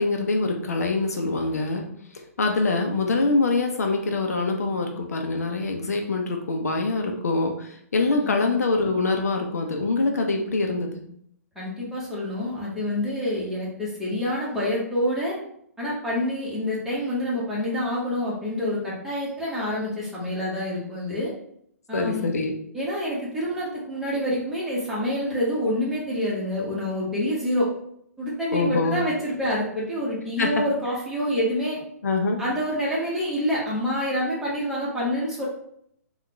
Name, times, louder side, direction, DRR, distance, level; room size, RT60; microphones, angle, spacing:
voice 1, 0.0-1.8 2.4-10.9 21.9-22.6 28.5-29.1 30.4-30.6 32.0-32.4, left 3 dB, 70° left, 3 dB, 0.6 m, -24 dB
voice 2, 11.5-15.4 15.8-21.3 21.9-22.3 22.7-27.7 28.2-31.8 32.4-35.5, equal, 5° right, -7 dB, 1.1 m, -27 dB
3.5 x 2.3 x 3.0 m, 0.71 s
figure-of-eight pair, 125°, 9 cm